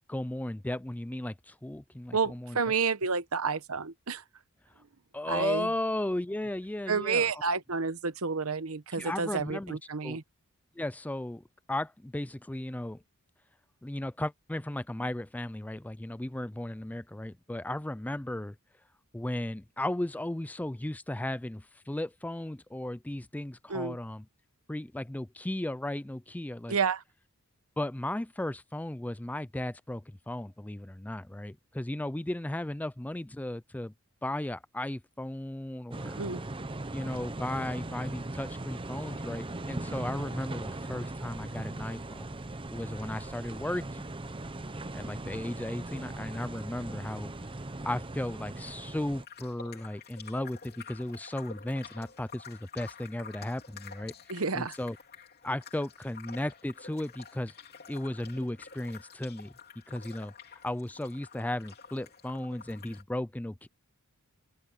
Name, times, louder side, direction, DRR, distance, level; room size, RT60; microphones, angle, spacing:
voice 1, 0.1-2.6 5.1-7.4 8.9-10.2 10.8-11.4 11.7-13.0 13.8-18.6 19.1-24.2 24.7-26.8 27.8-33.9 34.2-36.2 36.9-42.3 42.7-44.1 44.9-47.3 47.8-54.1 54.5-55.0 55.4-57.5 57.9-59.5 59.9-60.3 60.6-63.7, left 1 dB, 5° left, 0.4 m, -35 dB
voice 2, 2.1-4.2 5.3-5.7 6.9-10.2 23.7-24.0 26.7-27.0 36.2-36.4 54.3-54.8, right 5 dB, 70° right, 1.0 m, -30 dB
sound 1, 35.9-49.2, right 2 dB, 25° right, 0.8 m, -39 dB
sound 2, 49.2-63.0, left 6 dB, 45° left, 3.0 m, -50 dB
open air
head